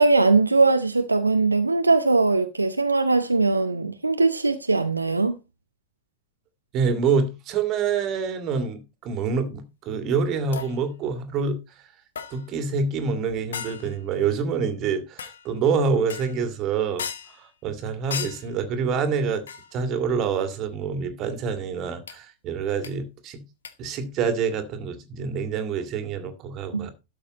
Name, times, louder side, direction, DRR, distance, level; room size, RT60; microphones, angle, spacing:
voice 1, 0.0-5.4 26.7-26.9, right 3 dB, 80° right, 0.7 m, -20 dB
voice 2, 6.7-11.6 12.3-17.0 17.3-19.4 19.7-23.4 23.8-26.9, right 5 dB, 35° right, 2.0 m, -26 dB
MR Pan and Pots, 10.5-10.9 12.2-12.6 13.5-14.0 15.2-15.5 16.1-16.5 17.0-17.4 18.1-18.6 19.5-19.8 22.1-22.2 22.8-22.9 23.6-23.7, left 7 dB, 65° left, 1.2 m, -36 dB
12.5 x 6.7 x 4.0 m
figure-of-eight pair, 90°, 0 cm